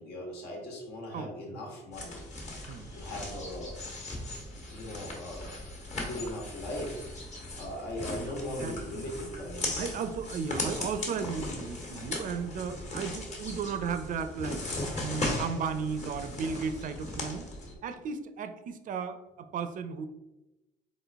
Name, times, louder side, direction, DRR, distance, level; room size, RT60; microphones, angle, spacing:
voice 1, 0.0-3.8 4.7-5.5 6.0-7.1 7.5-10.0, left 1 dB, 75° left, -1 dB, 1.5 m, -39 dB
voice 2, 1.1-1.7 2.7-2.9 3.2-3.3 8.1-9.1 9.8-17.5 17.8-20.1, right 6 dB, 50° right, 9 dB, 0.5 m, -35 dB
sound 1, 1.9-17.7, left 2 dB, 45° left, 1.3 m, -38 dB
3.9 x 3.8 x 3.5 m, 1.0 s
cardioid pair, 110°, 17 cm